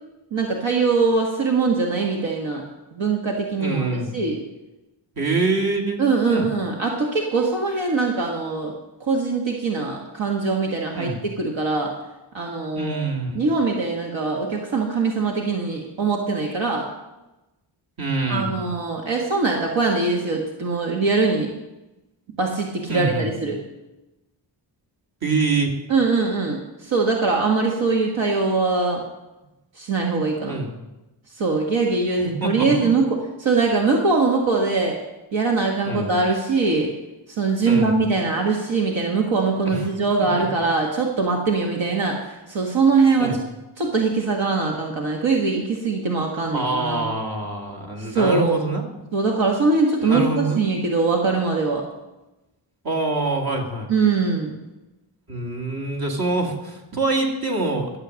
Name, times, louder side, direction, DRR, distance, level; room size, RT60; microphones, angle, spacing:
voice 1, 0.3-2.6 2.9-4.4 6.0-8.7 9.1-11.9 12.3-12.9 13.3-16.8 18.3-21.5 22.4-23.6 25.9-29.0 29.8-30.6 31.4-35.0 35.3-36.9 37.4-43.4 43.8-47.1 48.1-48.5 49.1-51.8 53.9-54.6, right 4 dB, 70° right, 0 dB, 1.7 m, -22 dB
voice 2, 3.6-4.2 5.2-6.0 6.3-6.5 10.9-11.2 12.7-13.5 18.0-18.7 22.9-23.3 25.2-25.7 30.5-30.7 32.2-33.0 35.9-36.2 37.7-38.1 39.7-39.9 43.2-43.4 46.5-48.8 50.0-50.6 52.8-53.9 55.3-57.9, right 3 dB, 50° right, 1 dB, 2.3 m, -25 dB
12.5 x 7.8 x 6.4 m, 1.0 s
wide cardioid pair, 120°, 47 cm